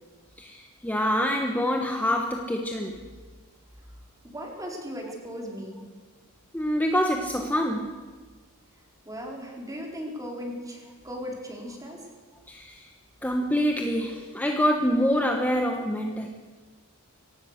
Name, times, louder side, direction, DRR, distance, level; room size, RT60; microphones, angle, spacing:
voice 1, 0.4-3.1 6.5-8.0 12.5-12.9 13.2-16.3, equal, 10° left, 3 dB, 1.2 m, -26 dB
voice 2, 4.2-5.8 9.1-12.0, equal, 15° right, 0 dB, 4.4 m, -37 dB
23.5 x 18.0 x 6.6 m, 1.4 s
head